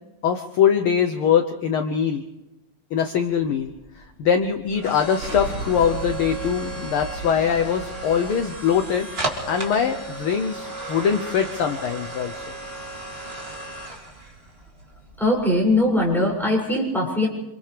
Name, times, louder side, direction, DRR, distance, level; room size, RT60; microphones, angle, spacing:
voice 1, 0.2-2.2 2.9-12.4, left 7 dB, 65° left, 5 dB, 1.4 m, -22 dB
sound 1, 3.3-16.3, right 2 dB, 20° right, 2.6 m, -35 dB
Explosion, 5.2-10.0, right 4 dB, 60° right, 5.1 m, -36 dB
voice 2, 15.2-17.3, left 1 dB, ahead, -4 dB, 6.7 m, -21 dB
28.5 x 28.0 x 3.4 m, 0.98 s
omnidirectional pair, 3.4 m